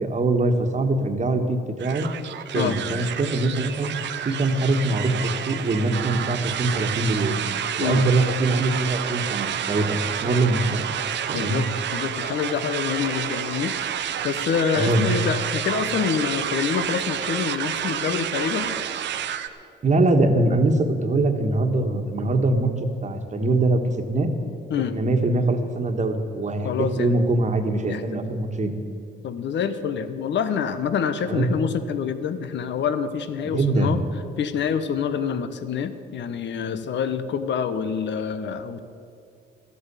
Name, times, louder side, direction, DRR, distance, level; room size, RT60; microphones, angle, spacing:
voice 1, 0.0-2.1 2.5-3.9 4.2-7.4 7.8-10.8 11.3-11.6 14.7-15.0 19.8-22.7 23.0-23.8 24.1-24.3 24.9-26.7 27.0-28.7 31.3-31.5 33.4-34.0, right 2 dB, 35° right, 5 dB, 1.5 m, -23 dB
sound 1, 1.8-19.5, right 9 dB, 65° right, 0.8 m, -29 dB
voice 2, 11.3-11.7 11.9-13.8 14.2-18.7 24.7-25.0 26.6-27.2 27.9-28.2 29.2-34.0 34.4-38.8, left 7 dB, 65° left, 11 dB, 1.0 m, -26 dB
13.5 x 8.5 x 8.3 m, 2.4 s
cardioid pair, 90°, 20 cm